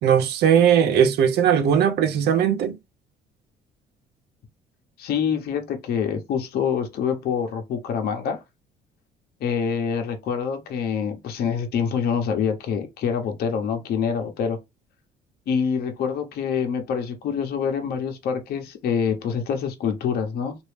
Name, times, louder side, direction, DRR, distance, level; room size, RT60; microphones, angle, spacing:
voice 1, 0.0-2.8, right 8 dB, 75° right, 0.7 m, -19 dB
voice 2, 5.0-8.4 9.4-14.6 15.5-20.6, left 7 dB, 70° left, 0.9 m, -26 dB
3.0 x 2.6 x 3.3 m
cardioid pair, 110°, 17 cm